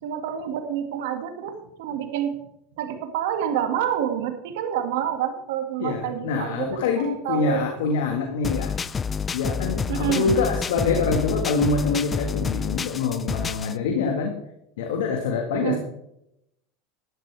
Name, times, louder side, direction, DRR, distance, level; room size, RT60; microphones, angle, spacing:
voice 1, 0.0-2.4 2.8-6.7 7.0-7.6 9.9-10.4 15.5-15.8, right 10 dB, 75° right, 6 dB, 2.1 m, -28 dB
voice 2, 5.8-8.7 9.3-14.4 14.8-15.8, left 4 dB, 80° left, 2 dB, 1.8 m, -25 dB
sound 1, 8.4-13.7, left 6 dB, 20° left, 0.4 m, -28 dB
12.0 x 11.5 x 3.5 m, 0.80 s
supercardioid pair, 115°, 0 cm